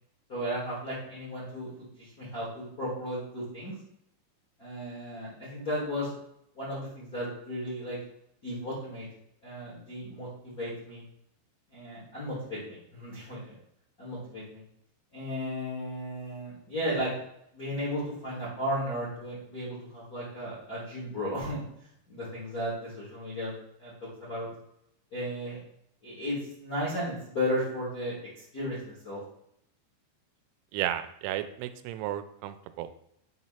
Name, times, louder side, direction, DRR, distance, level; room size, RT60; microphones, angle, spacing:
voice 1, 0.3-1.7 2.0-3.7 4.6-6.1 6.5-8.0 8.4-9.1 9.4-11.0 11.7-13.5 14.0-14.6 15.1-17.1 17.5-21.6 22.1-23.5 23.8-24.5 25.1-25.6 26.0-29.2, equal, 55° left, -8 dB, 0.9 m, -34 dB
voice 2, 30.7-32.9, right 12 dB, 90° right, 10 dB, 3.0 m, -33 dB
7.7 x 2.9 x 5.6 m, 0.75 s
omnidirectional pair, 5.3 m